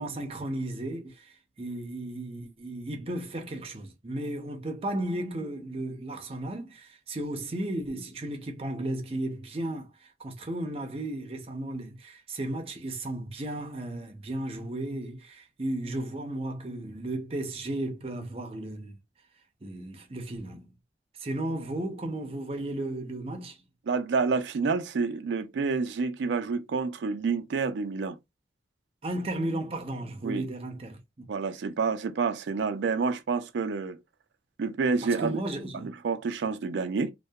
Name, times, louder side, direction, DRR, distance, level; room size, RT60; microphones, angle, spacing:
voice 1, 0.0-19.0 19.6-20.7 21.2-23.6 29.0-31.2 35.0-35.9, right 1 dB, 35° right, 0.5 m, -34 dB
voice 2, 23.9-28.2 30.2-30.5 31.3-34.0 34.6-35.4 35.7-37.1, right 4 dB, 90° right, 0.4 m, -28 dB
2.6 x 2.2 x 2.2 m
head